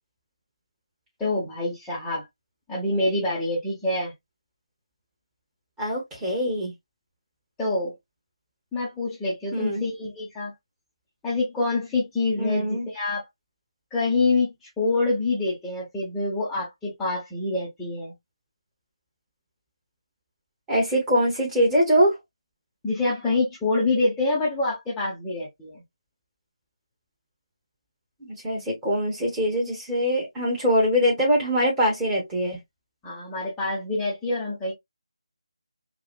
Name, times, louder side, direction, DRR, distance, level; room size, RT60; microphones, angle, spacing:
voice 1, 1.2-2.3 2.7-4.1 7.6-7.9 8.7-10.5 11.2-13.3 13.9-18.1 22.8-25.8 33.0-34.7, left 2 dB, 5° left, 0.9 m, -26 dB
voice 2, 5.8-6.7 9.5-9.8 12.4-12.9 20.7-22.1 28.2-32.6, equal, 10° right, 1.5 m, -23 dB
4.8 x 2.4 x 2.3 m
figure-of-eight pair, 160°, 3 cm